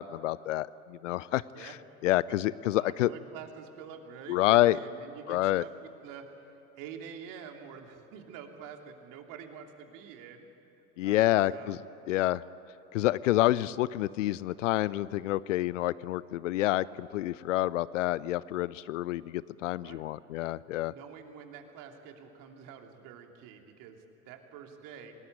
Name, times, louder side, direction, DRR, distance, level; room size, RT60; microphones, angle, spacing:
voice 1, 0.0-1.7 2.0-3.1 4.3-4.8 5.3-5.6 11.0-11.8 12.1-12.4 12.9-20.9, left 15 dB, 55° left, 20 dB, 0.6 m, -28 dB
voice 2, 2.8-10.5 11.0-11.7 19.8-20.0 20.6-25.2, right 7 dB, 45° right, 4 dB, 3.1 m, -47 dB
28.5 x 20.0 x 9.2 m, 2.9 s
figure-of-eight pair, 80°, 44 cm